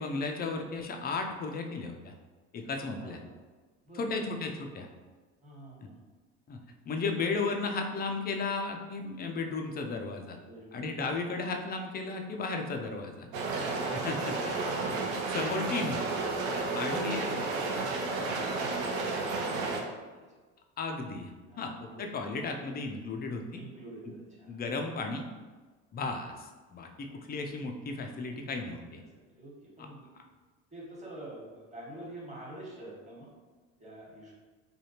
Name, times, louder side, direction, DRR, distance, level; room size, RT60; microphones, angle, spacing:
voice 1, 0.0-2.1 2.5-3.2 3.9-4.9 5.8-5.9 6.5-6.6 6.8-10.4 10.7-13.3 13.8-14.9 15.3-16.0 16.7-17.7 20.8-21.3 21.6-23.6 24.0-24.1 24.5-25.3 25.9-29.0 29.8-29.9, left 3 dB, 25° left, 3 dB, 0.4 m, -35 dB
voice 2, 2.9-3.2 3.9-4.3 5.4-6.0 10.3-11.2 13.2-13.8 14.3-15.0 16.4-20.4 21.5-22.0 23.5-24.6 27.1-27.2 29.0-30.1 30.7-33.3 33.8-34.3, right 1 dB, 20° right, -4 dB, 1.3 m, -46 dB
sound 1, 13.3-19.8, right 3 dB, 75° right, 0.6 m, -32 dB
3.4 x 2.3 x 2.8 m, 1.3 s
hypercardioid pair, 70°, 38 cm